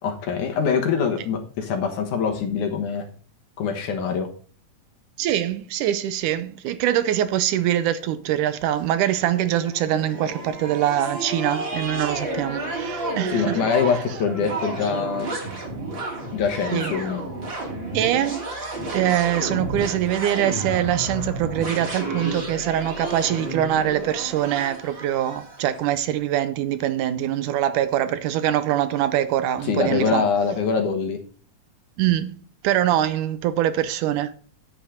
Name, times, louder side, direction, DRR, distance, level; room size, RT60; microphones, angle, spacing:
voice 1, 0.0-3.1 3.6-4.3 13.3-15.3 16.3-17.2 29.6-31.2, left 6 dB, 65° left, 2.5 m, -24 dB
voice 2, 5.2-13.6 16.7-16.9 17.9-18.5 18.9-30.2 32.0-32.3 32.6-34.3, right 11 dB, 75° right, 2.0 m, -23 dB
sound 1, 8.8-25.8, right 2 dB, 35° right, 3.3 m, -31 dB
10.0 x 8.4 x 5.0 m
omnidirectional pair, 4.1 m